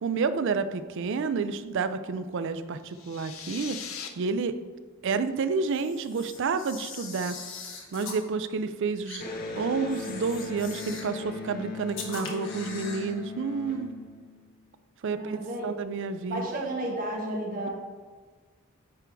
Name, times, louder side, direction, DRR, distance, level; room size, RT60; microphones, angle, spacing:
voice 1, 0.0-3.8 4.2-4.5 5.0-7.3 7.9-13.9 15.0-16.7, right 4 dB, 60° right, 11 dB, 0.4 m, -30 dB
sound 1, 2.8-4.1, left 7 dB, 85° left, 0.7 m, -40 dB
Camera, 5.7-8.2 9.1-9.2 9.9-11.2 11.9-13.1, left 4 dB, 65° left, 1.1 m, -41 dB
Electric guitar, 9.2-14.7, left 3 dB, 45° left, 1.3 m, -38 dB
voice 2, 15.1-15.7 16.3-17.7, right 1 dB, 45° right, -2 dB, 1.2 m, -32 dB
9.7 x 3.5 x 4.6 m, 1.4 s
head